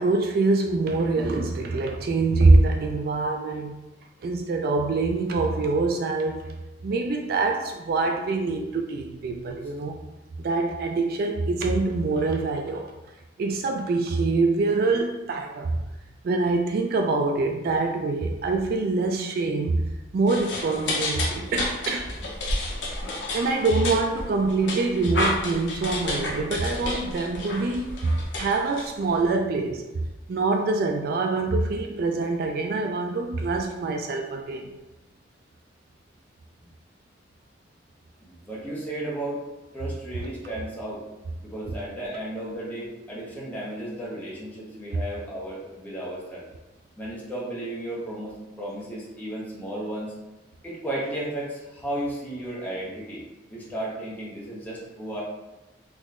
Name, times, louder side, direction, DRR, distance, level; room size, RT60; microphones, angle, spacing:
voice 1, 0.0-3.8 4.2-6.5 6.8-10.0 10.4-12.9 13.4-15.8 16.2-22.1 23.3-29.9 30.3-34.7, right 3 dB, 55° right, 3 dB, 0.3 m, -24 dB
sound 1, 20.3-29.3, left 2 dB, 70° left, 0.7 m, -31 dB
voice 2, 38.2-39.4 39.7-41.0 41.4-46.4 47.0-50.2 50.6-53.2 53.5-55.2, right 1 dB, 10° left, -7 dB, 0.9 m, -34 dB
3.7 x 3.0 x 2.5 m, 1.0 s
head